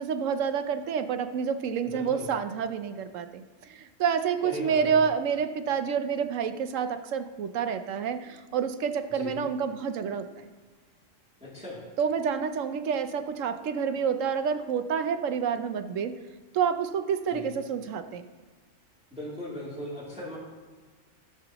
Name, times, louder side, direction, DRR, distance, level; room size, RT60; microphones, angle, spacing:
voice 1, 0.0-10.5 12.0-16.2 16.5-18.3, right 7 dB, 80° right, 9 dB, 1.0 m, -28 dB
voice 2, 1.8-2.3 4.4-5.0 9.1-9.4 11.4-11.8 17.3-17.4 19.1-20.4, left 1 dB, 5° right, -8 dB, 2.6 m, -38 dB
17.0 x 7.0 x 2.9 m, 1.4 s
omnidirectional pair, 1.3 m